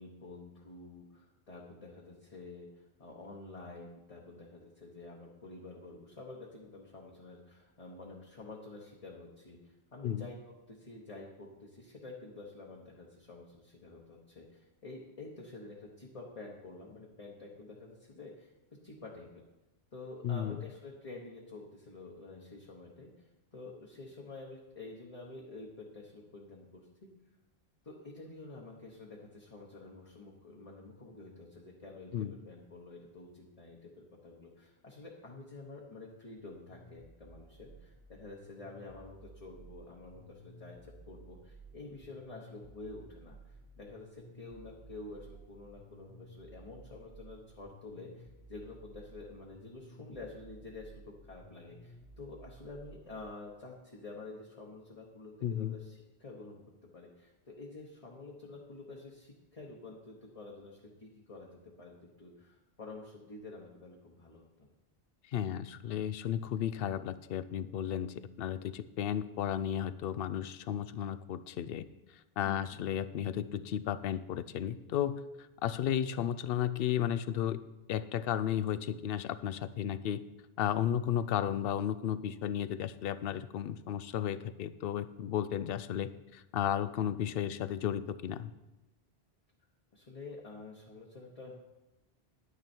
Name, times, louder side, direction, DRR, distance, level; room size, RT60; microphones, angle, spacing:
voice 1, 0.0-18.5 18.8-19.3 19.9-27.1 27.8-56.6 56.9-64.7 72.4-72.8 89.9-91.6, left 3 dB, 35° left, -2 dB, 1.3 m, -49 dB
voice 2, 20.2-20.6 32.1-32.3 55.4-55.8 65.3-71.8 72.4-75.2 75.6-77.6 77.9-80.2 80.6-88.5, left 10 dB, 70° left, 15 dB, 0.7 m, -34 dB
sound 1, 36.4-53.3, right 2 dB, 70° right, 1.8 m, -55 dB
10.5 x 9.7 x 4.4 m, 1.0 s
omnidirectional pair, 1.1 m